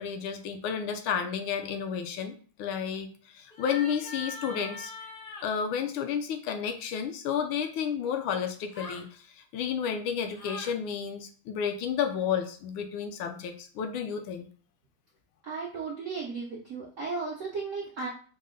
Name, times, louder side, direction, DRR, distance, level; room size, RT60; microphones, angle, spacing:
voice 1, 0.0-4.9 5.4-14.5, left 7 dB, 75° left, 6 dB, 1.4 m, -31 dB
sound 1, 3.5-5.5 8.7-9.1 10.3-10.7, left 3 dB, 50° left, 0.6 m, -42 dB
voice 2, 15.4-18.1, right 4 dB, 65° right, -3 dB, 0.7 m, -35 dB
5.3 x 2.1 x 3.7 m, 0.41 s
omnidirectional pair, 2.4 m